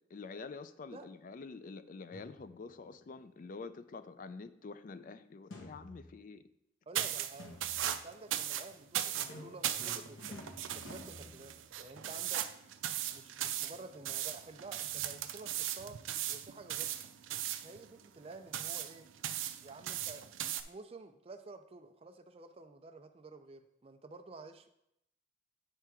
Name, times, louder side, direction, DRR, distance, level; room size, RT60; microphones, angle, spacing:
voice 1, 0.0-6.4, left 4 dB, 45° left, 12 dB, 0.3 m, -47 dB
sound 1, 2.1-2.8 5.5-6.4 7.4-8.1 9.1-12.1, left 1 dB, 85° left, 1.2 m, -51 dB
voice 2, 6.9-7.6 7.9-12.4 13.1-16.0 16.3-16.9 17.6-19.1 19.6-24.7, right 3 dB, 30° right, 8 dB, 0.4 m, -51 dB
sound 2, 6.9-20.6, right 11 dB, 90° right, 0.4 m, -38 dB
9.0 x 3.4 x 4.7 m, 0.80 s
head